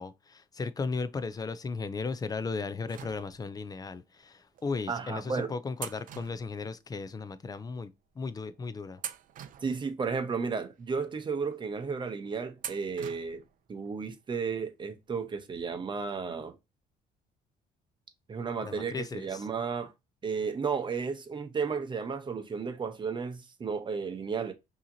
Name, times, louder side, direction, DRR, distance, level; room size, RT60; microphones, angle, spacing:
voice 1, 0.0-7.9 8.2-9.0 18.6-19.5, left 4 dB, 20° left, 0.4 m, -36 dB
sound 1, 2.9-3.7 4.5-4.7 5.8-7.2 7.5-7.6 8.3-8.5 9.0-10.3 10.8-10.9 12.6-13.5 13.8-13.9 15.1-15.2 15.5-15.6, right 10 dB, 55° right, 0.5 m, -44 dB
voice 2, 4.9-5.5 9.6-13.4 13.7-16.5 18.3-19.9 20.2-24.5, right 5 dB, 30° right, 0.8 m, -33 dB
5.5 x 2.9 x 2.7 m
cardioid pair, 110°, 17 cm